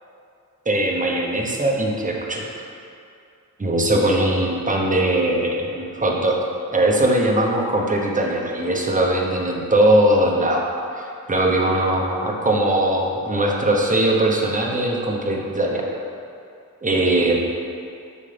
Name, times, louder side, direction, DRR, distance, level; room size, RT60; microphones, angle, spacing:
voice 1, 0.7-2.6 3.6-6.4 6.7-15.9 16.8-17.4, right 1 dB, 25° right, -1 dB, 1.0 m, -20 dB
9.4 x 6.4 x 3.4 m, 2.5 s
wide cardioid pair, 125°, 33 cm